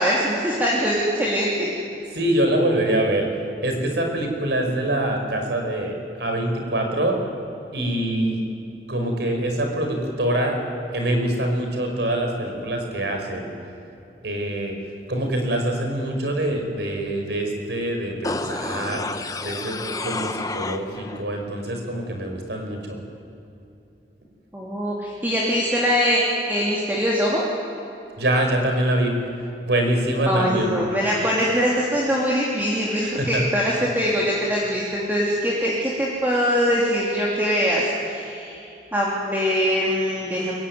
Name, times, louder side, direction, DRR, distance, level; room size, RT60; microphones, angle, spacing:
voice 1, 0.0-1.7 24.5-26.2 26.5-27.4 30.3-38.6 38.9-40.5, equal, 10° right, -5 dB, 2.9 m, -22 dB
voice 2, 2.1-3.3 3.6-7.2 7.7-8.4 8.9-10.6 10.9-13.5 14.2-14.7 15.1-19.0 19.4-19.8 20.0-23.0 28.2-29.1 29.6-30.7 33.0-33.4, right 1 dB, 80° right, 3 dB, 5.0 m, -24 dB
sound 1, 18.2-21.2 21.6-21.7, left 3 dB, 20° left, 0.9 m, -30 dB
24.0 x 21.0 x 9.5 m, 2.8 s
head